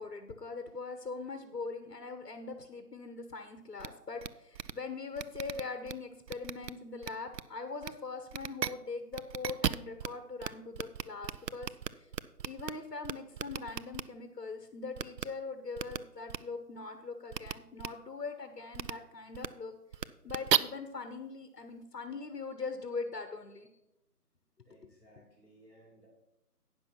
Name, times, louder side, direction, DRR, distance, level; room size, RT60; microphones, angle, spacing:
voice 1, 0.0-11.7 12.0-12.1 12.4-19.8 20.2-23.7 24.8-24.9, left 4 dB, 75° left, 7 dB, 1.2 m, -41 dB
sound 1, 3.8-3.9 4.2-4.3 4.5-4.7 5.2-5.9 6.3-6.7 7.0-7.4 7.8-7.9 8.3-8.7 9.1-10.1 10.4-10.5 10.7-12.7 13.0-14.0 15.0-15.2 15.8-16.0 16.3-16.4 17.3-17.5 17.8-17.9 18.7-18.9 19.3-19.5 19.9-20.6, right 9 dB, 90° right, 0.6 m, -34 dB
voice 2, 24.6-26.1, right 1 dB, 5° left, -18 dB, 4.4 m, -60 dB
9.5 x 6.2 x 5.8 m, 0.87 s
figure-of-eight pair, 170°, 48 cm